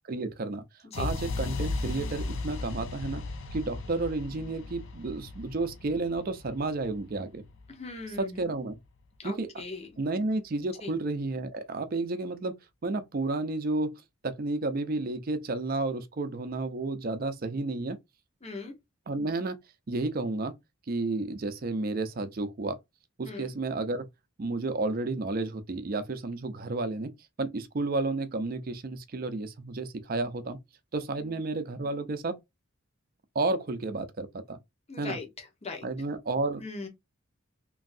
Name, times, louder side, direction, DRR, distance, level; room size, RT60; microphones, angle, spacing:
voice 1, 0.1-0.6 1.0-3.2 3.5-7.4 8.2-8.8 9.2-9.6 10.0-18.0 19.1-19.6 19.9-20.6 20.9-22.8 23.2-24.1 24.4-30.6 30.9-32.4 33.3-34.6 35.0-35.2 35.8-36.6, right 2 dB, 45° right, 0.5 m, -31 dB
sound 1, 0.9-8.9, left 3 dB, 65° left, 0.6 m, -36 dB
voice 2, 7.7-8.5 9.2-9.9 10.8-10.9 18.4-18.7 23.2-23.5 31.2-31.3 34.9-35.9 36.6-36.9, left 3 dB, 30° left, 0.9 m, -40 dB
3.0 x 2.6 x 2.5 m
head